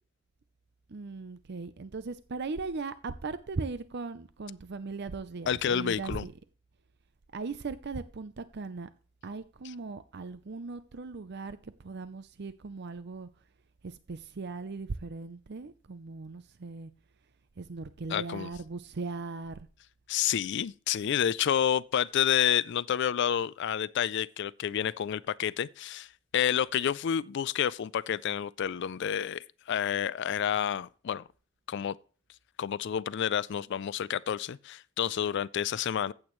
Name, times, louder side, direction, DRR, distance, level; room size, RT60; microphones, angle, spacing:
voice 1, 0.9-6.3 7.3-8.9 9.2-13.3 13.8-16.9 17.6-19.7, right 4 dB, 55° right, 0.6 m, -38 dB
voice 2, 5.5-6.2 18.1-18.5 20.1-26.1 26.3-31.2 31.7-32.0 32.6-36.1, left 9 dB, 60° left, 0.4 m, -29 dB
14.5 x 8.7 x 3.1 m
head